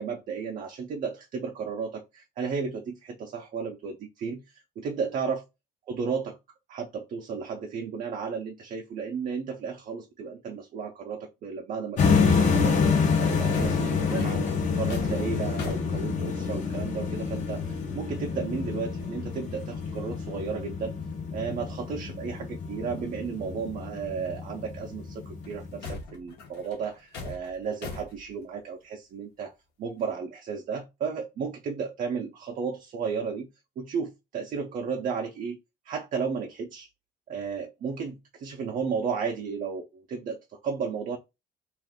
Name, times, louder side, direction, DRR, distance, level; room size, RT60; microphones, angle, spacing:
voice 1, 0.0-5.4 5.9-6.4 6.7-14.5 14.7-20.9 21.3-33.5 33.8-35.6 35.8-36.9 37.3-41.2, right 6 dB, 50° right, 0.5 m, -34 dB
sound 1, 12.0-25.9, left 5 dB, 45° left, 0.8 m, -28 dB
sound 2, 13.5-16.8 18.7-18.8 19.0-19.5 19.8-20.1 20.6-20.7 21.0-21.2 22.3-22.4 23.8-23.9 25.4-28.3, left 3 dB, 80° left, 1.0 m, -41 dB
2.5 x 2.4 x 3.5 m
cardioid pair, 110°, 17 cm